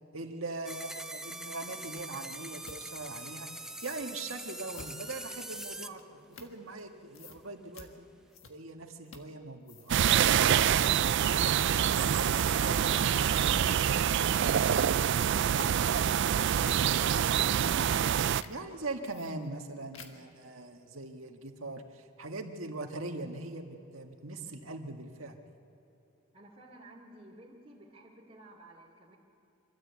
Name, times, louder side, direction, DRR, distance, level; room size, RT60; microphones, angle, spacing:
voice 1, 0.1-3.5 3.8-8.1 8.5-11.6 11.9-14.8 18.5-25.4, right 2 dB, 80° right, 4 dB, 1.7 m, -41 dB
sound 1, 0.6-5.9, right 1 dB, 5° right, 0.5 m, -43 dB
sound 2, 2.0-2.1 2.6-2.8 3.7-4.1 4.7-5.0 5.5-6.9 7.1-7.4 7.7-7.9 8.3-8.7 9.1-9.4 9.6-10.1 10.7-11.0 11.3-11.7 12.0-12.4 13.4-13.6 14.3-14.5 14.9-16.9 17.4-18.1 18.4-18.6 19.0-19.7 19.9-20.3, left 4 dB, 75° left, 1.6 m, -51 dB
sound 3, 9.9-18.4, right 9 dB, 60° right, 0.4 m, -26 dB
voice 2, 26.3-29.2, right 1 dB, 30° right, -8 dB, 2.5 m, -53 dB
25.5 x 13.5 x 8.2 m, 2.8 s
head